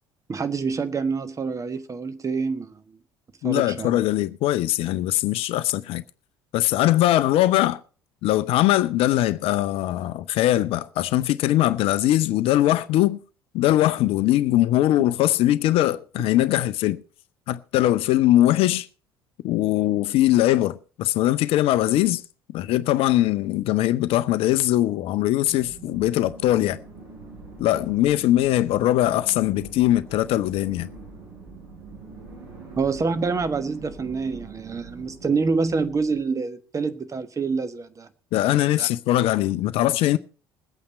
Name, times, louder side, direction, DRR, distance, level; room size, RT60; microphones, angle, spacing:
voice 1, 0.3-2.8 3.4-3.9 32.8-38.1 38.4-38.9, right 4 dB, 25° right, 1.3 m, -27 dB
voice 2, 3.4-6.0 6.5-7.8 8.2-13.2 13.5-17.0 17.5-18.9 19.4-22.2 22.5-26.8 27.6-30.9 38.3-40.2, left 14 dB, 50° left, 0.6 m, -21 dB
sound 1, 25.4-36.2, right 3 dB, 65° right, 5.7 m, -44 dB
20.5 x 8.6 x 4.2 m
figure-of-eight pair, 60°, 13 cm